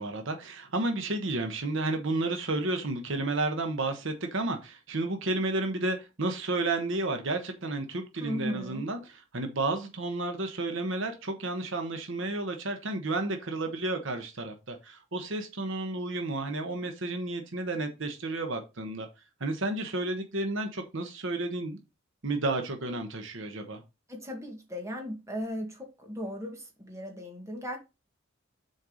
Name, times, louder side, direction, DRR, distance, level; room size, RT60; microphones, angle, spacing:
voice 1, 0.0-19.1 19.4-21.8 22.2-23.8, right 2 dB, 65° right, 1.2 m, -32 dB
voice 2, 8.2-8.9 24.1-27.8, equal, 15° right, 2.0 m, -37 dB
6.6 x 4.6 x 5.0 m
head